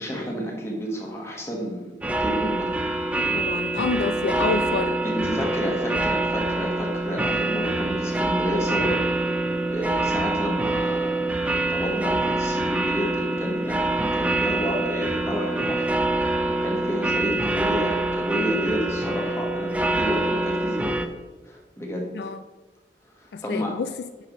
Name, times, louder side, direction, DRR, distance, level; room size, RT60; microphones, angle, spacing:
voice 1, 0.0-2.8 5.0-9.0 9.7-13.8 14.1-21.1 21.4-22.3 23.2-23.7, equal, 15° left, -1 dB, 1.4 m, -31 dB
sound 1, 2.0-21.1, right 2 dB, 10° right, 0.4 m, -25 dB
voice 2, 3.2-5.0 22.1-22.4 23.3-23.9, left 4 dB, 70° left, 10 dB, 0.3 m, -28 dB
9.5 x 5.8 x 3.1 m, 1.3 s
head